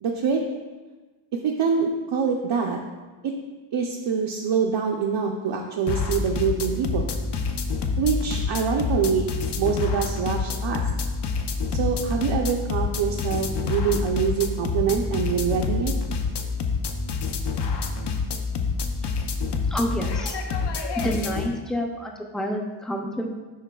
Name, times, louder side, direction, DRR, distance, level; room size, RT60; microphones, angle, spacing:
voice 1, 0.0-0.4 1.4-2.8 3.2-3.3 3.7-7.1 8.0-9.3 9.6-10.8 11.7-15.9, right 6 dB, 65° right, 1 dB, 0.6 m, -25 dB
sound 1, 5.9-21.5, left 4 dB, 55° left, 0.6 m, -27 dB
voice 2, 19.7-20.4 21.0-23.3, equal, ahead, 2 dB, 0.4 m, -28 dB
11.0 x 4.0 x 2.2 m, 1.3 s
wide cardioid pair, 170°, 48 cm